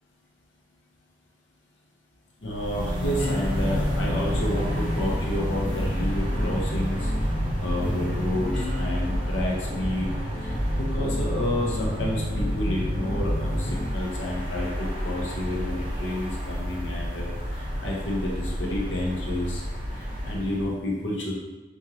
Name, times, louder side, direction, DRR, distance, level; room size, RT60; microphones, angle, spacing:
voice 1, 2.4-7.1 7.6-10.1 10.4-19.6 19.9-21.3, left 1 dB, 75° left, -2 dB, 0.8 m, -30 dB
sound 1, 2.4-20.7, equal, 30° right, 1.0 m, -30 dB
sound 2, 3.2-13.9, equal, ahead, 0.9 m, -32 dB
4.9 x 2.5 x 2.8 m, 1.2 s
head